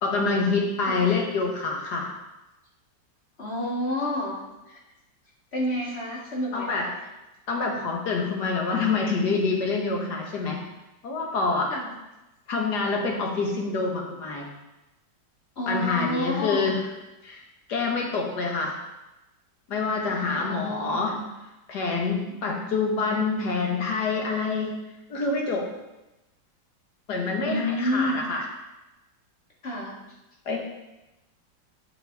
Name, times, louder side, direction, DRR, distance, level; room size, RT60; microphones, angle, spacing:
voice 1, 0.0-2.1 6.5-6.9 7.5-10.6 11.0-11.7 12.5-14.5 15.7-16.8 17.2-17.4 17.7-18.8 19.7-21.2 21.7-24.8 25.1-25.7 27.1-28.4 30.5-30.6, left 4 dB, 65° left, 0 dB, 1.8 m, -26 dB
voice 2, 0.9-1.3 3.4-4.4 4.7-4.8 5.5-7.0 11.7-11.9 15.6-16.8 20.1-21.1 27.4-28.3 29.6-30.0, left 1 dB, 35° left, -4 dB, 1.8 m, -30 dB
11.5 x 5.1 x 3.4 m, 0.98 s
omnidirectional pair, 2.0 m